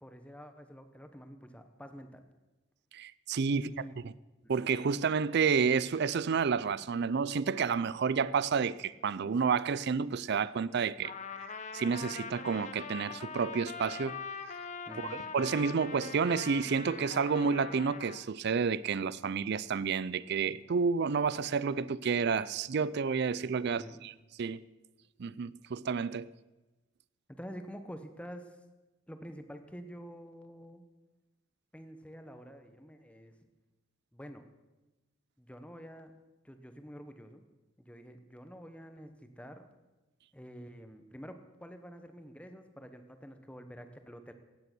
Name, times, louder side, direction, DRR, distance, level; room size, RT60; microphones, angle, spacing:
voice 1, 0.0-2.3 3.5-3.9 4.4-4.6 14.9-15.3 23.7-24.0 27.3-28.6 29.1-30.8 31.7-33.3 34.1-34.5 35.4-36.1 36.4-37.4 37.8-39.7 40.3-44.3, equal, 5° left, 1.0 m, -48 dB
voice 2, 2.9-3.7 4.5-11.1 11.5-14.2 15.3-24.1 24.4-24.6 25.2-26.3, right 5 dB, 55° right, 0.4 m, -30 dB
Trumpet, 11.0-18.2, left 5 dB, 35° left, 0.9 m, -43 dB
16.0 x 9.7 x 6.1 m
head